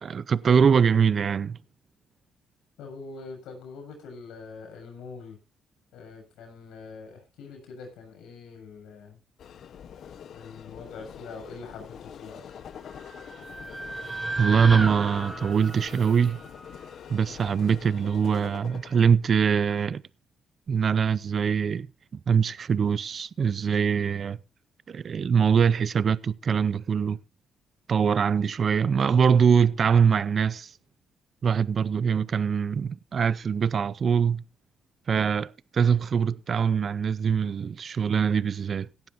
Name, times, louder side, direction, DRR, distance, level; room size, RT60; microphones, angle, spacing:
voice 1, 0.0-1.6 14.4-16.4 17.1-20.0 20.7-21.9 22.1-24.4 24.9-27.2 27.9-30.7 31.4-34.4 35.1-38.9, right 6 dB, 50° right, 0.5 m, -23 dB
voice 2, 2.8-5.4 5.9-9.2 10.3-12.7, left 4 dB, 90° left, 6.9 m, -44 dB
sound 1, 9.4-19.1, left 8 dB, 65° left, 0.9 m, -45 dB
sound 2, 12.9-17.2, right 2 dB, 20° right, 3.1 m, -34 dB
17.0 x 12.5 x 2.6 m
cardioid pair, 90°, 0 cm